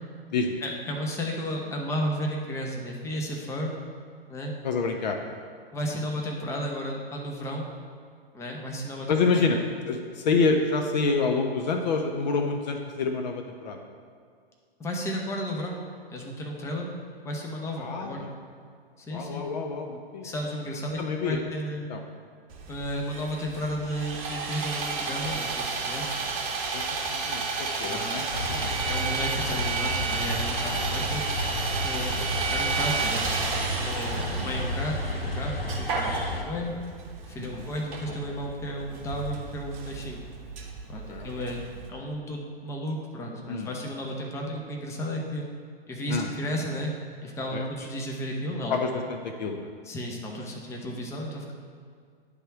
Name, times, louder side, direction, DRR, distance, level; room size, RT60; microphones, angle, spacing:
voice 1, 0.6-3.7 4.3-4.5 5.7-7.7 8.3-9.5 14.8-15.8 16.1-16.9 17.2-18.3 19.0-19.4 20.2-21.9 22.7-26.2 27.8-28.2 28.9-31.4 31.8-32.2 32.5-36.7 37.3-40.2 40.9-41.6 41.9-45.4 45.9-46.9 47.2-48.7 49.8-51.5, equal, 10° left, -1 dB, 0.7 m, -33 dB
voice 2, 4.6-5.2 9.1-9.6 9.9-13.8 17.8-18.3 19.1-20.3 21.0-21.4 21.9-22.0 26.7-28.7 32.1-32.3 36.0-36.7 37.5-37.6 41.1-41.3 43.5-43.7 46.1-46.3 47.5-47.7 48.7-49.7, left 4 dB, 45° left, 4 dB, 0.7 m, -28 dB
Sawing, 22.5-41.9, right 4 dB, 35° right, 0.9 m, -32 dB
sound 1, 28.3-36.4, equal, 80° left, 1.0 m, -32 dB
10.0 x 3.6 x 4.6 m, 2.1 s
figure-of-eight pair, 110°, 30 cm